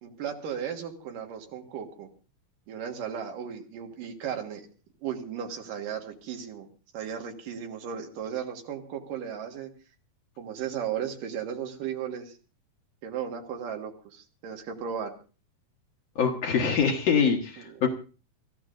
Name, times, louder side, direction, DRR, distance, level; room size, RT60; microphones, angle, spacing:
voice 1, 0.0-2.1 2.7-4.7 5.0-6.7 6.9-9.7 10.4-12.4 13.0-15.1 17.6-17.8, right 8 dB, 75° right, 4 dB, 3.2 m, -35 dB
voice 2, 16.2-17.9, left 6 dB, 60° left, 2 dB, 2.2 m, -24 dB
26.5 x 14.5 x 2.6 m, 0.34 s
omnidirectional pair, 3.8 m